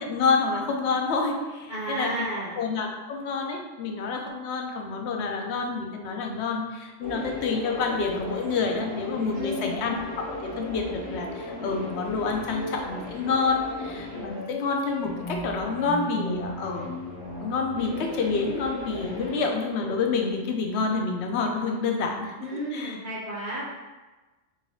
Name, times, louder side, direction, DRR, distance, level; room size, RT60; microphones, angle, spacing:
voice 1, 0.0-2.1 2.6-16.9 17.3-23.0, left 4 dB, 65° left, 2 dB, 0.8 m, -28 dB
voice 2, 1.7-2.6 9.3-9.9 22.4-23.8, right 1 dB, 55° right, -10 dB, 1.3 m, -32 dB
sound 1, 7.0-20.3, left 1 dB, 35° right, 1.6 m, -36 dB
3.6 x 2.8 x 3.0 m, 1.2 s
omnidirectional pair, 1.3 m